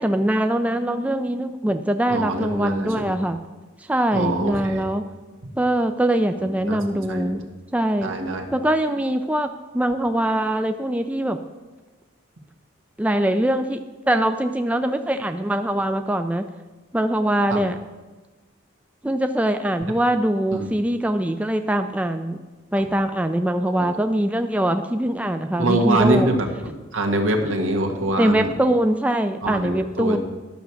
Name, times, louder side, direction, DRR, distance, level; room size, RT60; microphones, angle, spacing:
voice 1, 0.0-3.4 3.8-5.0 5.6-7.4 7.7-8.1 8.5-11.4 13.0-16.4 16.9-17.8 19.0-22.4 22.7-26.3 28.2-30.2, right 1 dB, 5° right, 7 dB, 0.4 m, -22 dB
voice 2, 2.1-3.2 4.1-4.9 6.4-6.8 7.1-7.4 8.0-8.5 17.5-17.6 20.5-20.7 23.7-23.9 25.6-26.5 26.9-28.4 29.4-30.2, right 1 dB, 85° right, 2 dB, 1.6 m, -24 dB
11.5 x 6.2 x 7.0 m, 1.2 s
head